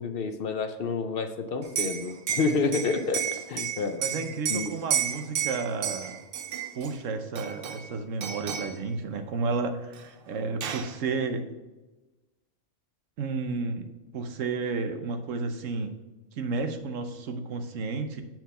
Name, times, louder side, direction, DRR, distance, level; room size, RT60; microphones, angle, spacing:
voice 1, 0.0-4.2 4.5-4.7, left 4 dB, 60° left, 8 dB, 0.7 m, -29 dB
Liquid, 1.6-6.9 7.4-7.9 8.2-8.8 10.0-10.1 10.3-10.9, right 9 dB, 60° right, 0.7 m, -32 dB
voice 2, 4.0-6.2 6.7-11.5 13.2-16.0 16.4-18.2, right 4 dB, 85° right, 7 dB, 1.2 m, -32 dB
8.2 x 4.5 x 5.5 m, 1.1 s
omnidirectional pair, 1.3 m